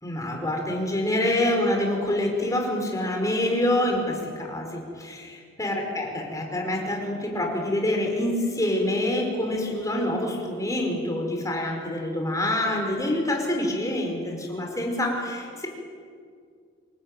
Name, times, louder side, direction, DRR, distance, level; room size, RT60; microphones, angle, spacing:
voice 1, 0.0-15.7, left 1 dB, 15° left, 1 dB, 5.2 m, -26 dB
27.0 x 18.0 x 9.2 m, 2.2 s
head